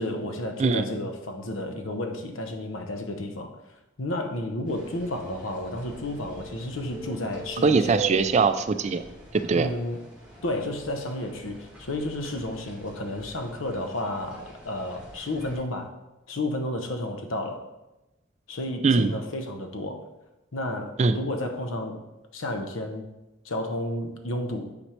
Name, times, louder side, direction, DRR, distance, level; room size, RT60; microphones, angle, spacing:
voice 1, 0.0-3.5 4.0-8.0 9.5-10.0 10.4-15.9 16.3-17.6 18.5-20.1 20.5-22.0 22.3-23.1 23.4-24.7, left 1 dB, 85° left, 5 dB, 0.8 m, -32 dB
sound 1, 4.6-15.6, right 2 dB, 5° right, 1.7 m, -42 dB
voice 2, 7.6-9.0 9.3-9.7 18.8-19.1 21.0-21.2, right 4 dB, 35° right, 10 dB, 0.3 m, -21 dB
8.8 x 4.2 x 3.2 m, 0.99 s
head